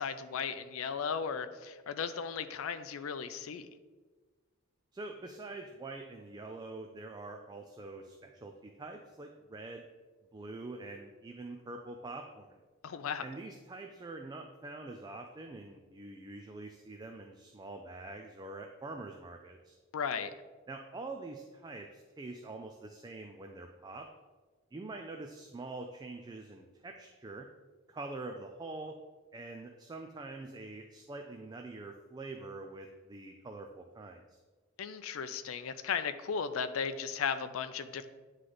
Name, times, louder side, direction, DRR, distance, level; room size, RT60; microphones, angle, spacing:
voice 1, 0.0-3.7 12.8-13.2 19.9-20.3 34.8-38.1, left 6 dB, 80° left, 10 dB, 0.4 m, -36 dB
voice 2, 4.9-9.9 10.3-12.6 13.2-19.8 20.7-24.1 24.7-27.5 27.9-29.0 29.3-34.4, right 2 dB, 20° right, 4 dB, 0.3 m, -45 dB
9.4 x 3.2 x 3.8 m, 1.3 s
head